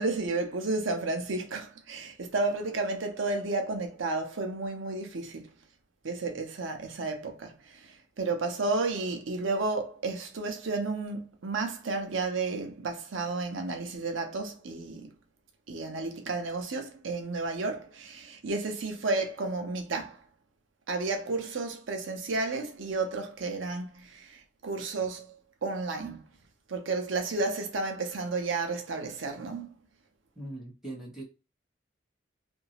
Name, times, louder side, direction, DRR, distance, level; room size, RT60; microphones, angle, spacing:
voice 1, 0.0-5.5 6.0-7.5 8.2-15.1 15.7-20.2 20.9-25.3 25.6-26.2 26.7-29.7, right 3 dB, 90° right, 0.7 m, -32 dB
voice 2, 30.4-31.2, right 2 dB, 5° right, 1.2 m, -40 dB
2.8 x 2.6 x 2.8 m
head